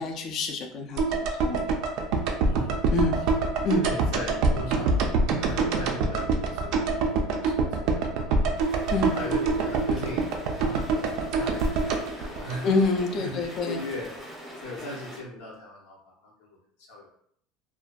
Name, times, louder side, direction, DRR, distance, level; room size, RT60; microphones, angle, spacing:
voice 1, 0.0-1.7 2.9-3.3 3.6-3.9 8.9-9.2 12.6-13.8, left 3 dB, 35° left, 3 dB, 0.4 m, -27 dB
sound 1, 1.0-13.2 13.4-13.5, right 3 dB, 55° right, 0.3 m, -26 dB
voice 2, 2.5-2.8 3.2-5.1 5.4-8.7 9.1-12.7 13.2-14.1 14.6-17.1, left 1 dB, 85° left, -3 dB, 0.6 m, -39 dB
sound 2, 8.6-15.2, equal, ahead, 0.7 m, -43 dB
2.5 x 2.2 x 2.2 m, 0.66 s
cardioid pair, 170°, 0 cm